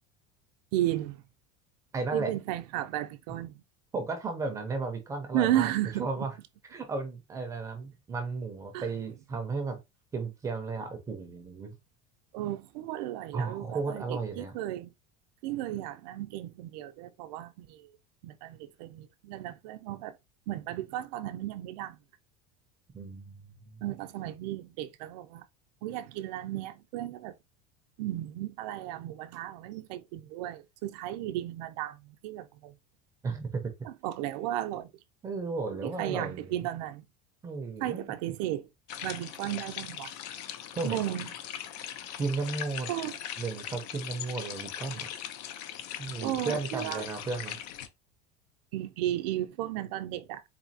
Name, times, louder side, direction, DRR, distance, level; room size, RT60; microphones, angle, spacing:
voice 1, 0.7-1.2 2.1-3.6 5.3-6.2 8.7-8.9 12.3-14.9 15.4-17.9 18.2-20.1 20.5-22.0 23.8-25.5 25.8-27.3 28.0-32.8 33.8-34.9 35.8-37.1 37.8-38.7 39.0-40.1 40.8-41.3 42.9-43.2 46.2-47.0 48.7-50.4, right 13 dB, 80° right, 0.5 m, -34 dB
voice 2, 1.9-2.3 3.9-5.7 6.0-6.3 6.7-9.8 10.1-11.7 13.3-14.5 22.9-23.8 33.2-33.7 35.2-36.5 37.4-38.1 40.8-41.0 42.2-42.9 43.4-45.1 46.0-47.6, right 4 dB, 15° right, 0.5 m, -34 dB
sound 1, 38.9-47.9, left 10 dB, 85° left, 0.6 m, -40 dB
4.1 x 2.7 x 2.7 m
cardioid pair, 180°, 21 cm